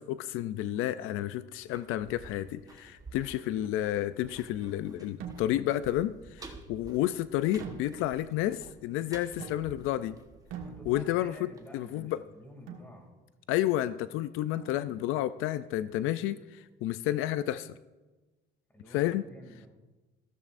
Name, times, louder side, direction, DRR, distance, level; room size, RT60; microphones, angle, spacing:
voice 1, 0.0-10.2 10.9-12.2 13.5-17.8 18.9-19.2, left 13 dB, 80° left, 14 dB, 0.4 m, -31 dB
sound 1, 1.5-12.3 12.6-12.7, right 3 dB, 15° right, 1.1 m, -52 dB
Hand Drum, 5.2-5.8 7.6-8.3 9.4-10.0 10.5-11.3 12.7-13.0 14.5-15.2, right 7 dB, 85° right, 1.5 m, -44 dB
voice 2, 10.6-13.1 18.7-19.7, equal, 10° left, 3 dB, 2.5 m, -50 dB
14.5 x 13.5 x 2.5 m, 1.2 s
cardioid pair, 130°, 21 cm